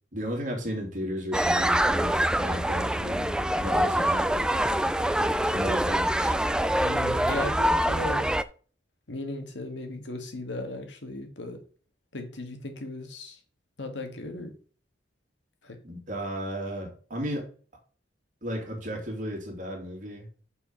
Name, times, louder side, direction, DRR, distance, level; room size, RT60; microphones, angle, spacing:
voice 1, 0.1-4.5 5.4-6.4 15.8-17.5 18.4-20.3, equal, 45° right, 1 dB, 2.6 m, -34 dB
sound 1, 1.3-8.4, right 1 dB, 5° right, 0.3 m, -25 dB
voice 2, 6.8-8.3 9.1-11.6 12.1-13.4 13.8-14.5 15.6-15.8, left 2 dB, 75° left, 5 dB, 1.8 m, -36 dB
6.7 x 5.0 x 5.5 m, 0.40 s
head